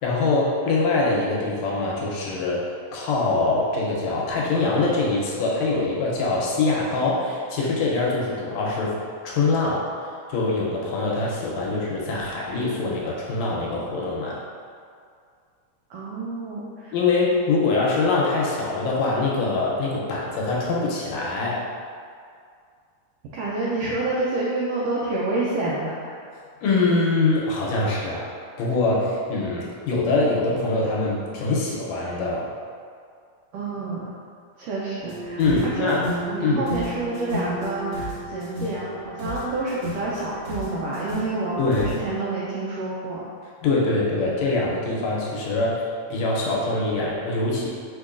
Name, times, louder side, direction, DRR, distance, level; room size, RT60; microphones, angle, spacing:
voice 1, 0.0-2.7 2.9-9.0 9.2-9.9 10.3-14.4 16.9-21.6 26.6-32.5 35.4-36.1 36.4-36.6 41.6-41.9 43.6-47.7, left 3 dB, 75° left, -4 dB, 1.7 m, -23 dB
voice 2, 15.9-16.9 23.3-26.2 33.5-34.0 34.6-35.4 35.8-36.0 36.3-43.2, right 2 dB, 85° right, -6 dB, 1.4 m, -28 dB
sound 1, 35.0-42.1, right 1 dB, 35° right, 1.4 m, -33 dB
5.1 x 3.7 x 2.4 m, 2.2 s
omnidirectional pair, 3.4 m